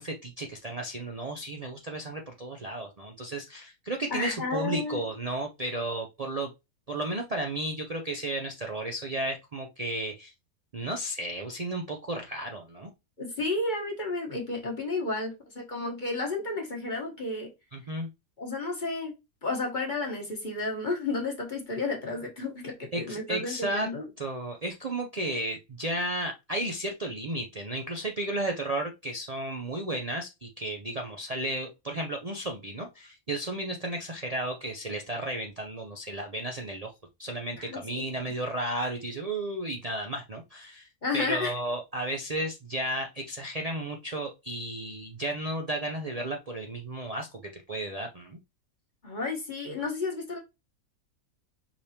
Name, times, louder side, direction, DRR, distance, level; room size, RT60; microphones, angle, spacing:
voice 1, 0.0-6.5 6.9-10.3 10.7-12.9 17.7-18.1 22.9-23.9 24.2-36.9 37.2-40.9 41.1-48.4, right 1 dB, 80° right, 0.3 m, -33 dB
voice 2, 4.1-5.0 13.2-17.5 18.4-19.1 19.4-24.1 37.6-38.1 41.0-41.5 49.0-50.4, left 3 dB, 35° left, 1.2 m, -32 dB
4.9 x 3.4 x 2.8 m
omnidirectional pair, 1.6 m